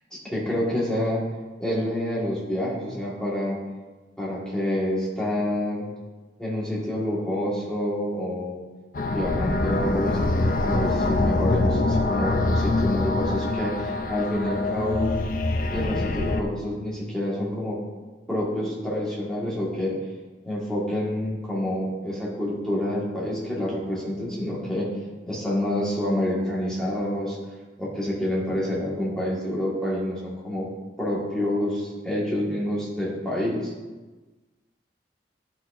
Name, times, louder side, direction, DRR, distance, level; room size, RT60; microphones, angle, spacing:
voice 1, 0.2-1.2 1.6-3.6 4.2-5.9 6.4-8.6 9.1-15.1 15.7-17.8 18.3-19.9 20.4-24.9 25.3-27.4 27.8-30.7 31.0-33.7, left 1 dB, 5° left, -7 dB, 1.6 m, -27 dB
sound 1, 8.9-16.4, left 2 dB, 50° left, 0.4 m, -25 dB
10.5 x 4.3 x 2.6 m, 1.2 s
head